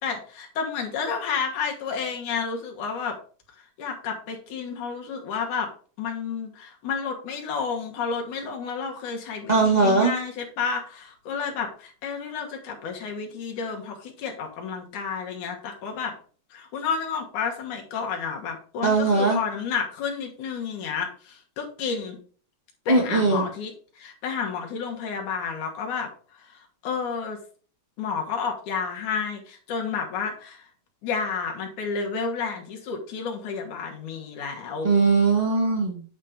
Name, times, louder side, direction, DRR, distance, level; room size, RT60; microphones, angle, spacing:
voice 1, 0.0-3.2 3.8-5.7 6.0-16.2 16.5-22.2 22.9-27.4 28.0-30.7 31.0-34.9, left 5 dB, 70° left, 1 dB, 2.7 m, -31 dB
voice 2, 9.5-10.1 18.8-19.4 22.9-23.5 34.8-36.0, right 3 dB, 20° right, -1 dB, 1.4 m, -20 dB
9.1 x 4.2 x 4.9 m, 0.42 s
omnidirectional pair, 3.7 m